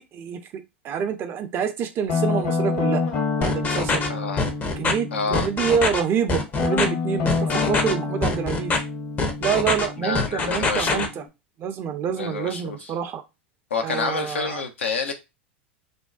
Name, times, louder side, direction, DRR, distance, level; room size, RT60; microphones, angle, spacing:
voice 1, 0.0-3.0 3.4-4.2 4.8-8.8 9.4-11.2 11.6-13.2 13.8-14.6, right 7 dB, 35° right, 0.5 m, -27 dB
Guitar, 2.1-5.9 6.5-11.3, left 4 dB, 50° left, 0.9 m, -28 dB
sound 1, 3.4-4.1 4.4-4.9 5.3-6.0 6.3-6.8 7.3-7.9 8.2-8.8 9.2-9.9 10.1-11.1, left 3 dB, 25° left, 0.6 m, -23 dB
voice 2, 4.1-4.4 5.1-5.5 10.0-11.1 12.1-12.9 13.7-15.1, left 4 dB, 80° left, 0.6 m, -28 dB
2.5 x 2.2 x 2.3 m
hypercardioid pair, 90°, 6 cm